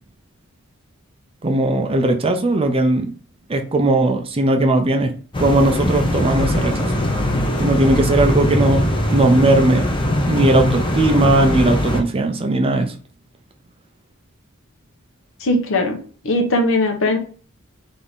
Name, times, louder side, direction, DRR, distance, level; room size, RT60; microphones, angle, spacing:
voice 1, 1.4-3.1 3.5-5.1 5.4-6.9 7.6-9.8 10.2-12.9, right 2 dB, 25° right, 5 dB, 0.5 m, -18 dB
sound 1, 5.3-12.0, left 1 dB, 25° left, 0.8 m, -21 dB
voice 2, 15.4-16.0 16.2-17.2, left 1 dB, 65° left, 3 dB, 1.0 m, -19 dB
3.6 x 3.5 x 4.0 m, 0.40 s
head